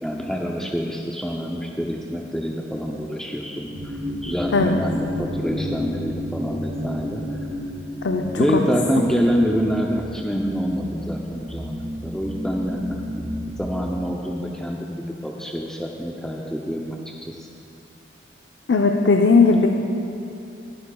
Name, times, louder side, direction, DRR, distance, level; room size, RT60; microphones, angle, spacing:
voice 1, 0.0-7.2 8.3-13.3 13.6-17.0 17.4-17.5, equal, 5° left, -1 dB, 0.5 m, -26 dB
sound 1, 3.7-13.6, left 1 dB, 25° right, 2.6 m, -32 dB
voice 2, 8.0-8.6 18.7-19.7, left 4 dB, 75° left, 3 dB, 0.5 m, -17 dB
20.5 x 9.6 x 2.3 m, 2.7 s
head